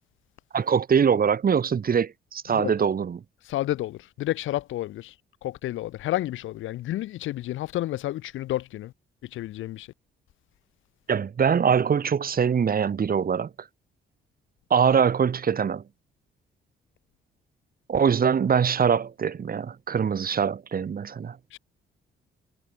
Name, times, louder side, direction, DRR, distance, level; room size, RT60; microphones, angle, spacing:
voice 1, 0.5-3.2 11.1-13.5 14.7-15.8 17.9-21.4, right 7 dB, 45° right, 5.5 m, -23 dB
voice 2, 3.5-5.1 5.4-8.9 9.3-9.9 21.5-21.6, left 15 dB, 85° left, 2.6 m, -30 dB
cardioid pair, 90°, 20 cm